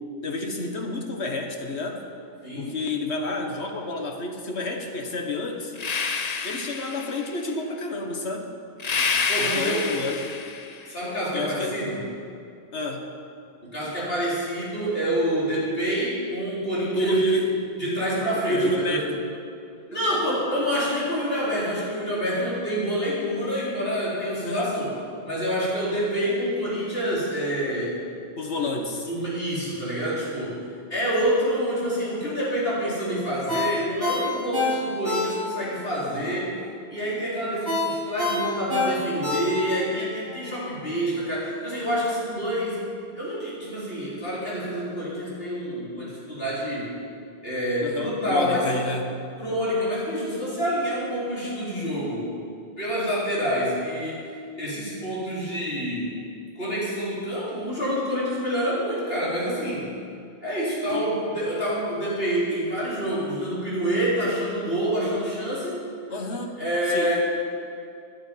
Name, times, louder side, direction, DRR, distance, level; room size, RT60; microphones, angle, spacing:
voice 1, 0.2-2.0 2.6-5.7 6.4-8.5 9.4-10.4 11.3-11.8 12.7-13.1 16.9-17.6 18.5-19.2 19.9-20.4 24.4-24.8 28.4-29.1 47.8-49.2 60.9-61.1 66.1-66.6 66.9-67.1, left 1 dB, 85° left, 4 dB, 1.8 m, -29 dB
sound 1, 5.8-7.4 8.8-10.9, left 5 dB, 40° left, 0.8 m, -28 dB
voice 2, 9.3-9.9 10.9-12.0 13.6-17.4 17.8-19.0 19.9-24.9 25.2-28.0 29.1-30.6 30.9-36.5 36.9-42.8 43.1-46.9 47.4-48.7 49.4-52.2 52.8-54.2 54.6-56.1 56.6-59.9 60.4-65.9 66.6-67.2, equal, 65° left, -8 dB, 4.5 m, -27 dB
Ringtone, 33.5-35.7 36.1-36.2 37.7-39.9 40.3-40.4, left 2 dB, 20° left, 5.1 m, -26 dB
12.0 x 9.9 x 9.7 m, 2.4 s
omnidirectional pair, 1.1 m